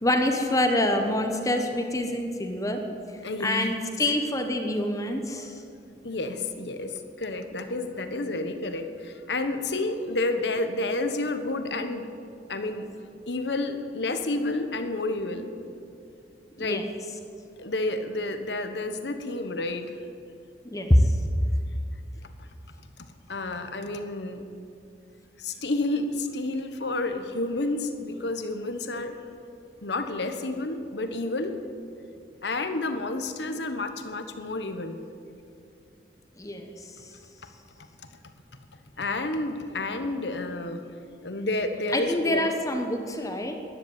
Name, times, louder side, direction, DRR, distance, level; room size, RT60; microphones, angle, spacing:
voice 1, 0.0-2.8 3.4-5.5 16.6-16.9 20.6-21.1 36.4-36.7 41.9-43.6, left 1 dB, 20° left, 4 dB, 1.1 m, -25 dB
voice 2, 3.2-3.8 6.0-12.1 12.5-12.9 13.3-15.5 16.6-16.8 17.6-19.9 23.3-24.4 25.4-29.2 29.8-31.6 32.4-35.0 39.0-40.8 41.2-42.4, left 2 dB, 70° left, 8 dB, 1.2 m, -30 dB
13.5 x 10.5 x 9.0 m, 2.5 s
head